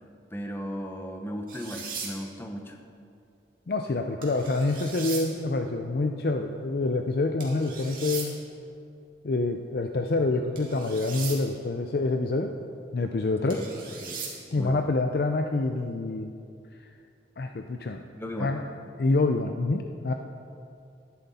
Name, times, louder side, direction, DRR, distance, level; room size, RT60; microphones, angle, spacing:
voice 1, 0.3-2.8 13.4-13.7 14.0-14.1 14.6-14.9 18.1-18.5, equal, 15° left, 3 dB, 0.8 m, -36 dB
sound 1, 1.5-2.1 4.2-5.2 7.4-8.3 10.6-11.4 13.5-14.3, right 5 dB, 50° right, 2.3 m, -38 dB
voice 2, 3.7-8.3 9.2-12.5 12.9-13.6 14.5-16.3 17.4-18.0 18.4-18.6 19.0-20.1, left 2 dB, 60° left, 5 dB, 0.5 m, -27 dB
12.5 x 11.0 x 4.2 m, 2.4 s
head